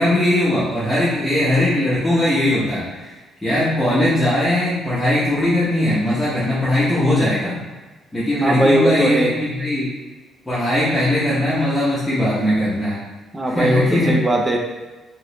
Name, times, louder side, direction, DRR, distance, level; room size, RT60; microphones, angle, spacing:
voice 1, 0.0-3.1 3.4-7.6 8.1-9.9 10.5-13.0 13.5-14.1, left 1 dB, 10° left, -11 dB, 0.8 m, -19 dB
voice 2, 8.4-9.3 13.3-14.6, right 1 dB, 15° right, 1 dB, 0.5 m, -19 dB
3.0 x 2.9 x 2.9 m, 1.2 s
cardioid pair, 130°, 0 cm